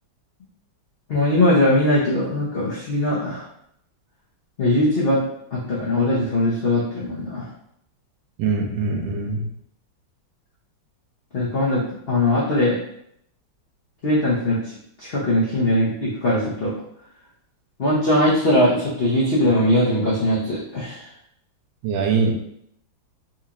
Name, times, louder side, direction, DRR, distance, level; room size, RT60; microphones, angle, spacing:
voice 1, 1.1-3.4 4.6-5.2 5.5-7.4 11.3-11.8 12.1-12.8 14.0-14.6 15.0-16.7 17.8-21.0, left 1 dB, 70° left, -7 dB, 0.5 m, -20 dB
voice 2, 8.4-9.5 21.8-22.3, right 4 dB, 85° right, 1 dB, 1.5 m, -22 dB
4.1 x 2.8 x 2.5 m, 0.72 s
omnidirectional pair, 2.1 m